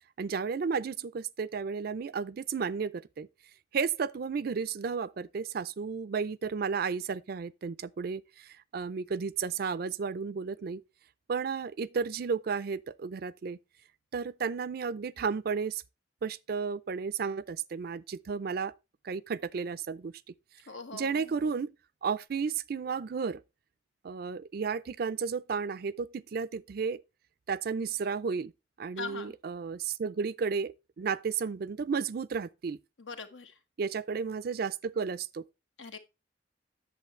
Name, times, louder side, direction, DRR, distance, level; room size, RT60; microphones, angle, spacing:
voice 1, 0.2-3.3 3.7-10.8 11.3-13.6 14.1-15.8 16.2-18.7 19.0-20.1 20.9-21.8 22.0-23.4 24.0-27.0 27.5-28.5 28.8-32.8 33.8-35.4, right 5 dB, 55° right, 0.4 m, -33 dB
voice 2, 20.7-21.3 29.0-29.3 33.0-33.5 35.8-36.0, left 4 dB, 85° left, 1.3 m, -41 dB
8.3 x 7.0 x 3.1 m
head